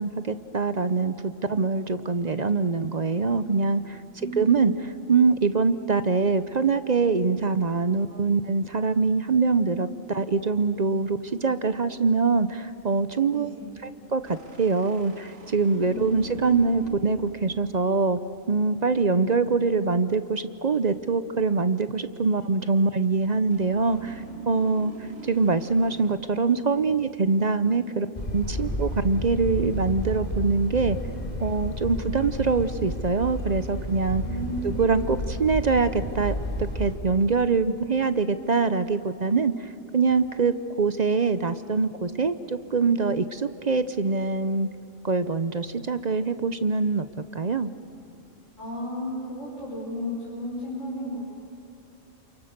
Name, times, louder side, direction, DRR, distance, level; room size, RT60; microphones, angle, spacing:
voice 1, 0.0-4.0 4.4-4.7 5.1-13.5 13.8-18.2 18.5-24.9 25.2-28.1 28.3-31.0 31.4-34.2 34.6-44.7 45.0-47.0 47.3-47.7, right 4 dB, 40° right, 12 dB, 0.6 m, -24 dB
voice 2, 4.2-4.8 13.3-13.6 15.9-16.4 34.2-34.8 48.6-51.2, equal, 70° left, -7 dB, 6.0 m, -33 dB
sound 1, 14.2-18.8 23.5-26.2, right 4 dB, 85° right, 2.4 m, -43 dB
sound 2, 28.1-37.0, equal, 30° left, 3.5 m, -31 dB
28.5 x 28.0 x 6.7 m, 2.7 s
omnidirectional pair, 1.4 m